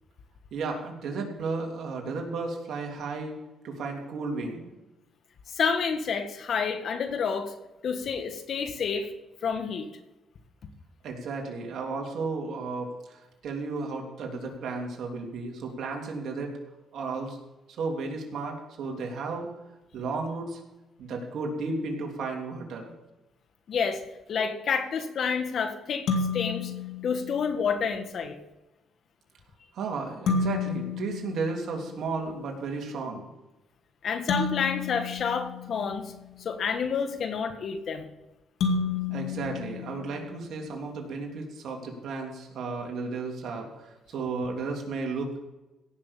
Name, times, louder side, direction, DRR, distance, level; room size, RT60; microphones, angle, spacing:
voice 1, 0.5-3.4 3.6-4.7 11.0-16.5 16.9-17.4 17.8-19.5 19.9-20.6 21.0-22.9 29.7-33.3 39.1-45.4, right 4 dB, 70° right, 1 dB, 3.2 m, -33 dB
voice 2, 5.5-7.5 7.8-9.1 9.4-9.9 23.7-24.0 24.3-26.1 26.3-26.7 27.0-28.4 34.0-36.1 36.4-38.1, left 6 dB, 60° left, 7 dB, 1.7 m, -29 dB
sound 1, 26.1-27.7 30.3-32.3 34.3-36.4 38.6-40.7, left 5 dB, 80° left, 2.2 m, -31 dB
17.0 x 6.4 x 7.3 m, 1.0 s
cardioid pair, 90°, 0 cm